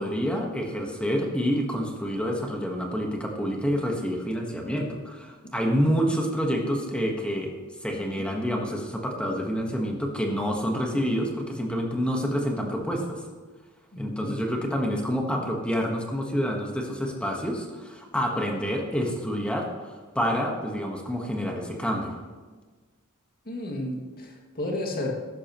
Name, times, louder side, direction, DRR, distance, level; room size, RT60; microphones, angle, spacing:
voice 1, 0.0-7.5 7.8-13.2 14.0-22.2, equal, 5° left, 1 dB, 1.3 m, -28 dB
voice 2, 13.9-14.3 23.5-25.1, left 1 dB, 45° left, 0 dB, 2.2 m, -32 dB
14.5 x 12.0 x 3.0 m, 1.4 s
head